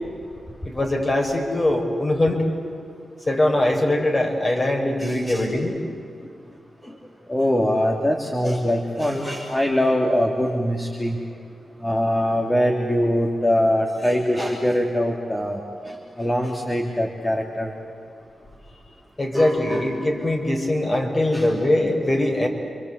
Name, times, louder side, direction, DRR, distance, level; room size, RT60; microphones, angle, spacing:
voice 1, 0.6-2.4 3.3-5.7 19.2-22.5, left 1 dB, 35° left, 1 dB, 5.9 m, -22 dB
voice 2, 5.0-5.5 6.8-6.9 7.3-11.2 11.8-15.6 15.9-17.7 19.3-19.9 21.3-21.5, equal, 15° left, -1 dB, 3.4 m, -23 dB
28.5 x 24.0 x 8.4 m, 2.4 s
cardioid pair, 50°, 0 cm